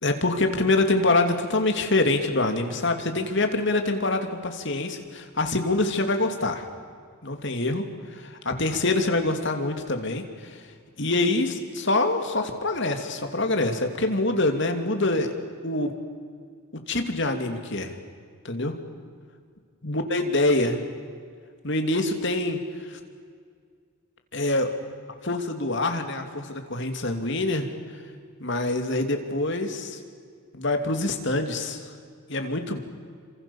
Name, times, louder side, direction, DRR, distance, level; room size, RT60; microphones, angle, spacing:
voice 1, 0.0-6.7 7.2-10.7 11.0-15.3 15.6-15.9 16.9-18.0 18.4-18.7 19.8-20.8 21.6-23.0 24.3-24.7 25.2-28.0 28.4-30.0 30.5-31.9 32.3-32.8, left 2 dB, 55° left, 5 dB, 2.7 m, -25 dB
28.5 x 26.0 x 7.2 m, 2.1 s
head